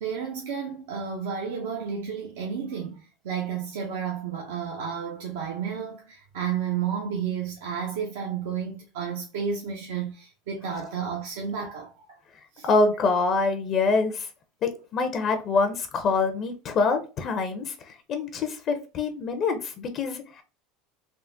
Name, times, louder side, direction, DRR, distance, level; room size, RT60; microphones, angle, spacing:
voice 1, 0.0-3.0 3.2-12.1 12.6-12.7, right 7 dB, 80° right, 0.6 m, -31 dB
voice 2, 12.6-14.3 14.6-17.7 18.1-20.4, left 4 dB, 45° left, 0.5 m, -25 dB
3.5 x 2.0 x 2.5 m
supercardioid pair, 100°, 0 cm